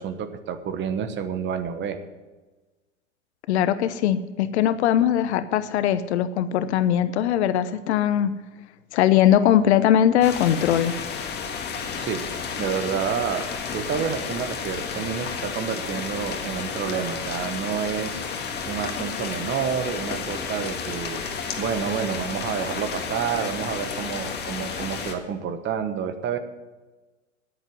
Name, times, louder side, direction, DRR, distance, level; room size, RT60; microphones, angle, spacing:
voice 1, 0.0-2.0 12.0-12.2 12.6-18.2 18.7-21.2 21.6-26.4, right 7 dB, 30° right, 9 dB, 1.3 m, -29 dB
voice 2, 3.5-8.3 8.9-10.9, left 10 dB, 60° left, 13 dB, 0.9 m, -20 dB
sound 1, 10.2-25.1, left 6 dB, 25° left, 1.8 m, -32 dB
10.0 x 8.9 x 9.2 m, 1.2 s
hypercardioid pair, 100°, 38 cm